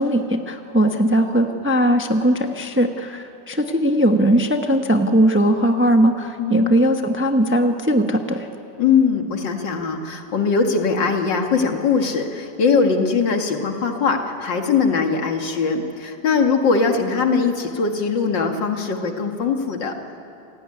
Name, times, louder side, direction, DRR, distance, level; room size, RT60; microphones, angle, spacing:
voice 1, 0.0-8.5, right 1 dB, 10° right, 5 dB, 0.9 m, -19 dB
voice 2, 6.4-6.7 8.8-19.9, left 5 dB, 75° left, 4 dB, 2.5 m, -21 dB
28.0 x 17.5 x 9.8 m, 3.0 s
omnidirectional pair, 2.0 m